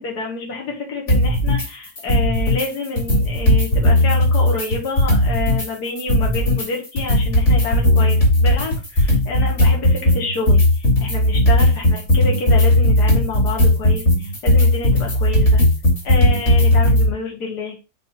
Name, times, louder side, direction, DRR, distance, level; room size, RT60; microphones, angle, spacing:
voice 1, 0.0-15.6 16.0-17.8, left 3 dB, 75° left, 0 dB, 2.1 m, -28 dB
sound 1, 1.1-1.7 2.0-2.7 3.0-5.7 6.0-17.1, left 1 dB, 45° left, 2.9 m, -16 dB
6.3 x 3.4 x 5.9 m, 0.31 s
omnidirectional pair, 1.7 m